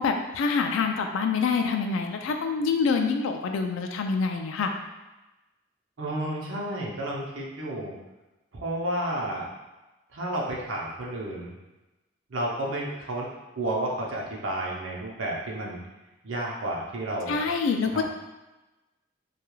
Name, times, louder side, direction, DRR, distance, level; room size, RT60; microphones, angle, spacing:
voice 1, 0.0-4.7 17.3-18.0, left 5 dB, 80° left, 4 dB, 0.3 m, -26 dB
voice 2, 6.0-7.9 8.5-9.5 10.1-11.5 12.3-13.3 13.6-15.8 16.2-17.5 17.9-18.0, right 1 dB, 80° right, -3 dB, 0.6 m, -31 dB
2.3 x 2.3 x 3.0 m, 1.1 s
head